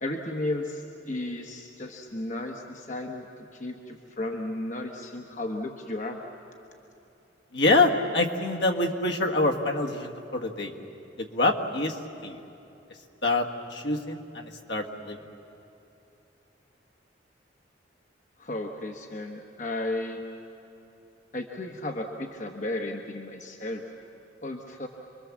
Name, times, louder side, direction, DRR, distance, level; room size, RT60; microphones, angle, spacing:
voice 1, 0.0-3.3 3.5-6.2 18.4-20.2 21.3-23.8 24.4-24.9, left 1 dB, 40° left, 2 dB, 1.2 m, -34 dB
voice 2, 7.5-10.7 11.2-12.4 13.2-15.2, left 2 dB, 60° left, 1 dB, 1.7 m, -26 dB
28.0 x 22.5 x 7.3 m, 2.9 s
head